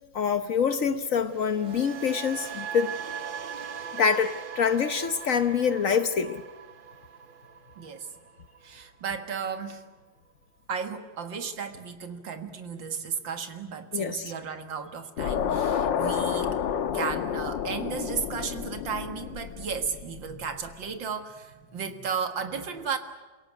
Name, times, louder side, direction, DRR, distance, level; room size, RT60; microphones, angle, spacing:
voice 1, 0.1-2.9 3.9-6.4 13.9-14.3, left 6 dB, 55° left, 1.1 m, -25 dB
sound 1, 1.2-9.3 9.6-9.9, right 7 dB, 45° right, 0.7 m, -40 dB
voice 2, 7.8-8.1 8.6-9.8 10.7-16.6 16.9-23.0, right 6 dB, 85° right, 2.4 m, -34 dB
sound 2, 15.2-20.4, left 8 dB, 85° left, 1.8 m, -30 dB
28.5 x 17.0 x 9.4 m
omnidirectional pair, 2.0 m